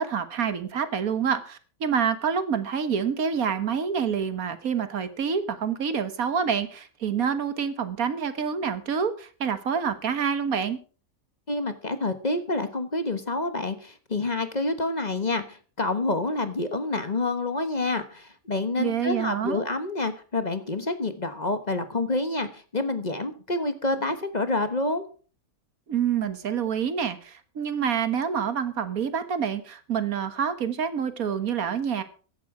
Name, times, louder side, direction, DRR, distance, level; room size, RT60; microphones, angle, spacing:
voice 1, 0.0-10.8 18.8-19.6 25.9-32.0, right 7 dB, 75° right, 11 dB, 1.8 m, -27 dB
voice 2, 11.5-25.0, left 2 dB, 30° left, 10 dB, 1.2 m, -28 dB
14.5 x 11.0 x 4.8 m, 0.39 s
omnidirectional pair, 1.5 m